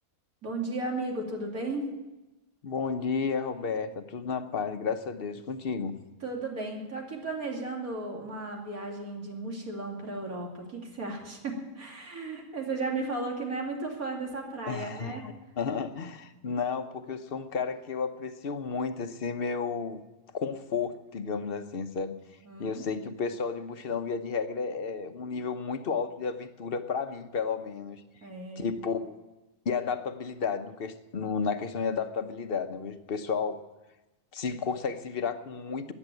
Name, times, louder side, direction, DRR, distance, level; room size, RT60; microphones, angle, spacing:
voice 1, 0.4-1.9 6.2-15.2 22.5-22.8 28.2-28.7, right 2 dB, 80° right, 0 dB, 2.9 m, -35 dB
voice 2, 2.6-5.9 14.7-20.0 20.3-22.2 22.6-28.0 28.6-29.2 29.6-33.6 34.3-35.9, left 5 dB, 50° left, 9 dB, 0.9 m, -32 dB
14.5 x 9.8 x 9.0 m, 1.1 s
omnidirectional pair, 1.5 m